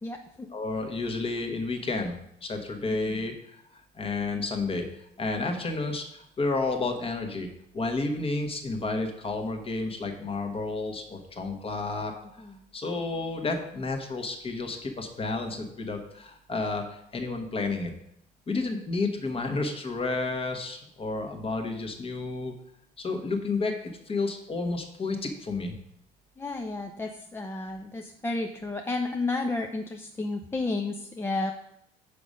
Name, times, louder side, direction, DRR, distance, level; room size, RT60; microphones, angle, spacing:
voice 1, 0.0-0.5 12.4-12.6 26.4-31.5, left 3 dB, 15° left, 3 dB, 0.5 m, -32 dB
voice 2, 0.5-4.9 5.2-7.5 7.7-12.4 12.7-17.9 18.5-22.5 23.0-25.8, left 3 dB, 35° left, 4 dB, 1.3 m, -31 dB
5.9 x 5.1 x 5.4 m, 0.75 s
cardioid pair, 110°, 17 cm